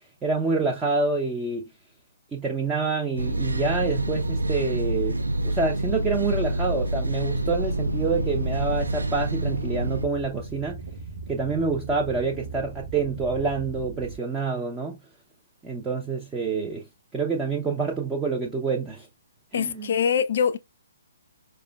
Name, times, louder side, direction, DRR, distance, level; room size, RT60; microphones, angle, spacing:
voice 1, 0.2-1.7 2.3-10.8 11.3-15.0 15.6-16.8 17.1-19.1 19.5-20.0, right 4 dB, 10° right, 0.5 m, -27 dB
sound 1, 3.2-10.1, right 1 dB, 75° right, 0.4 m, -27 dB
sound 2, 7.7-14.2, right 3 dB, 50° right, 0.8 m, -38 dB
voice 2, 19.5-20.6, left 7 dB, 50° left, 0.3 m, -23 dB
4.9 x 2.1 x 2.3 m
figure-of-eight pair, 130°, 0 cm